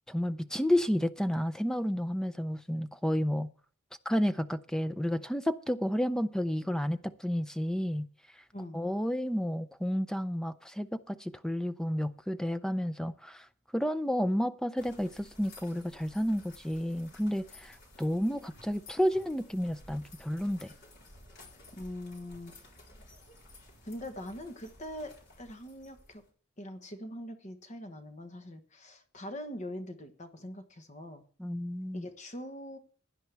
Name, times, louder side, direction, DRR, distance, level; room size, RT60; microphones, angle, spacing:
voice 1, 0.1-3.5 4.1-8.1 8.7-13.5 13.7-20.7 31.4-32.1, equal, 5° left, 0.5 m, -31 dB
sound 1, 14.8-26.3, left 2 dB, 50° left, 4.1 m, -55 dB
voice 2, 21.7-22.6 23.8-25.1 25.4-26.2 26.6-31.2 31.9-32.8, left 1 dB, 35° left, 1.2 m, -42 dB
16.5 x 10.5 x 3.4 m
head